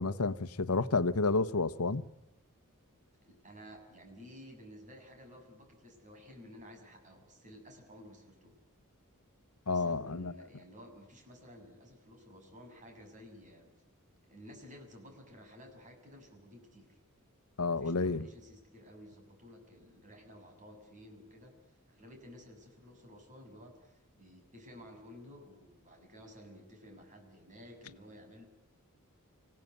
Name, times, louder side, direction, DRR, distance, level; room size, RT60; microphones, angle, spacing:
voice 1, 0.0-2.0 9.7-10.3 17.6-18.3, left 3 dB, 90° left, 1.1 m, -30 dB
voice 2, 3.2-8.5 9.7-13.7 14.2-17.0 17.8-28.4, equal, 35° right, 6.7 m, -54 dB
25.5 x 17.5 x 9.3 m
head